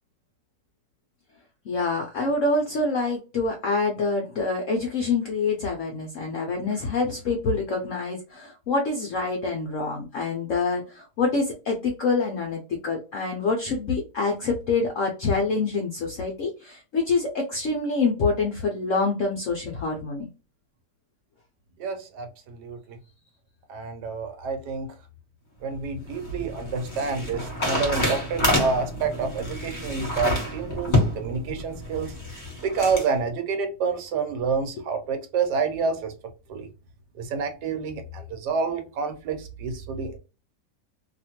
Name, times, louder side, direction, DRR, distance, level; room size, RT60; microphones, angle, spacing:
voice 1, 1.7-20.3, left 3 dB, 70° left, 0.7 m, -26 dB
voice 2, 21.8-23.0 23.7-24.9 25.6-36.1 36.5-36.7 37.1-40.2, right 5 dB, 70° right, 1.2 m, -28 dB
sound 1, 25.7-33.1, left 1 dB, 30° left, 1.1 m, -28 dB
2.8 x 2.5 x 2.8 m
omnidirectional pair, 2.0 m